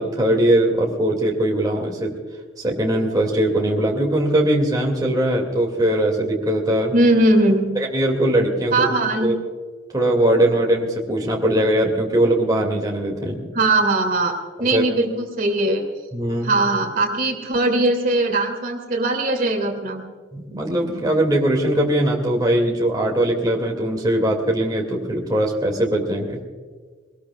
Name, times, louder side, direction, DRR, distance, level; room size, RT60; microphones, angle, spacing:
voice 1, 0.0-2.1 2.6-6.9 7.8-8.9 9.2-9.4 9.9-13.5 14.7-14.8 16.1-16.5 20.3-26.4, right 1 dB, 20° right, -1 dB, 2.4 m, -20 dB
voice 2, 6.9-7.7 8.7-9.3 13.5-15.8 16.4-20.0, right 2 dB, 45° right, 3 dB, 2.7 m, -20 dB
22.5 x 20.0 x 2.4 m, 1.5 s
head